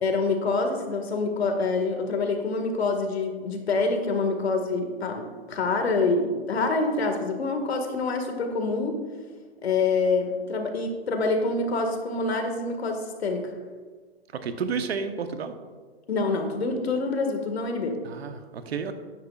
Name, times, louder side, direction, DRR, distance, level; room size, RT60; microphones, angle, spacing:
voice 1, 0.0-5.2 5.5-9.0 9.6-13.5 16.1-18.0, left 3 dB, 70° left, 4 dB, 1.9 m, -26 dB
voice 2, 14.3-15.5 18.0-18.9, right 5 dB, 70° right, 8 dB, 1.1 m, -31 dB
13.0 x 9.4 x 2.4 m, 1.5 s
hypercardioid pair, 160°, 33 cm